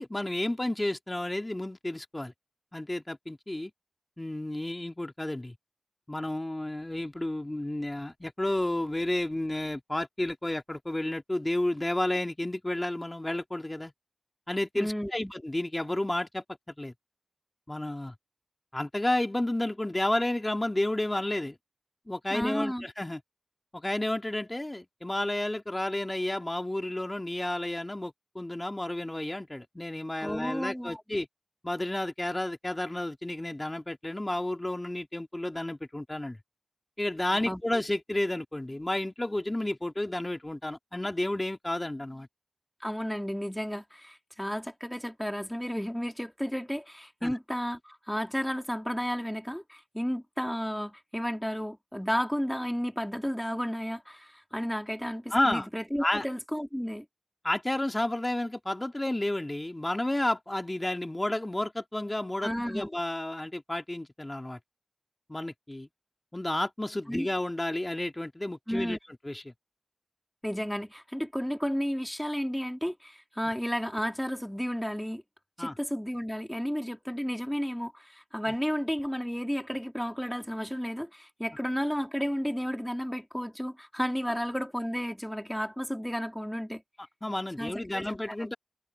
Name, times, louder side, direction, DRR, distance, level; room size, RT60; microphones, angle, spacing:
voice 1, 0.0-2.3 2.7-3.7 4.2-5.5 6.1-13.9 14.5-16.9 17.7-18.1 18.7-21.6 22.1-23.2 23.7-31.3 31.6-36.4 37.0-42.3 47.2-47.3 55.3-55.7 56.0-56.2 57.4-64.6 65.3-65.9 66.3-69.0 69.2-69.4 75.6-75.7 87.2-88.5, left 1 dB, 35° left, 2.4 m, -31 dB
voice 2, 14.7-15.3 22.3-22.9 30.2-31.0 37.4-37.6 42.8-57.1 62.4-62.9 67.1-67.3 68.7-69.0 70.4-75.2 75.6-86.8 87.6-88.5, equal, 5° left, 2.4 m, -32 dB
wide cardioid pair, 40°, 0 cm